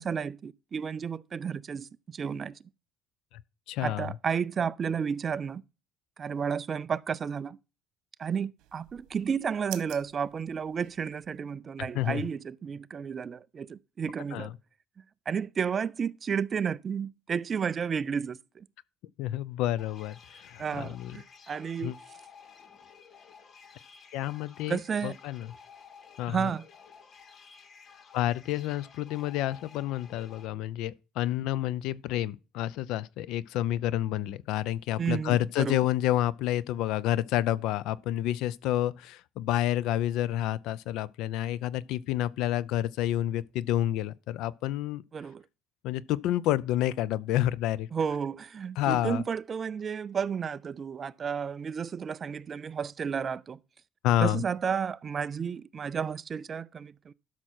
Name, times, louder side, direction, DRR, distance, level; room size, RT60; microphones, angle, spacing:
voice 1, 0.0-2.6 3.8-5.6 6.2-7.6 8.2-14.5 15.3-18.6 20.6-21.9 24.7-25.2 26.3-26.6 35.0-35.8 45.1-45.4 47.9-53.6 54.2-57.1, right 6 dB, 30° right, 0.4 m, -32 dB
voice 2, 3.7-4.1 11.9-12.2 14.3-14.5 19.2-21.2 21.8-21.9 24.1-25.5 26.2-26.5 28.1-45.0 45.8-47.9 48.8-49.2 54.0-54.4, left 13 dB, 70° left, 0.5 m, -29 dB
sound 1, 8.6-11.4, right 15 dB, 70° right, 1.4 m, -48 dB
sound 2, 19.8-30.5, left 6 dB, 35° left, 1.0 m, -53 dB
12.5 x 6.0 x 4.4 m
cardioid pair, 150°, 0 cm